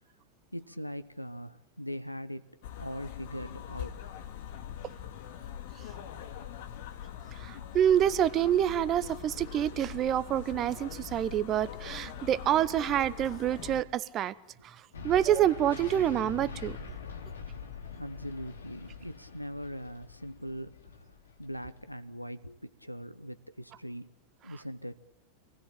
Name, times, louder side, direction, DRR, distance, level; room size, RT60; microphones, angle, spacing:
voice 1, 0.5-2.5 2.8-4.1 18.0-21.1 21.4-24.1 24.4-25.0, equal, 90° left, 11 dB, 0.9 m, -41 dB
sound 1, 2.6-13.8, left 10 dB, 50° left, 2.2 m, -43 dB
voice 2, 7.4-14.3 14.6-14.7 15.0-16.8, right 11 dB, 30° right, 18 dB, 1.0 m, -27 dB
sound 2, 14.9-21.9, left 6 dB, 65° left, 2.8 m, -44 dB
26.5 x 19.5 x 8.8 m, 0.90 s
figure-of-eight pair, 90°, 0 cm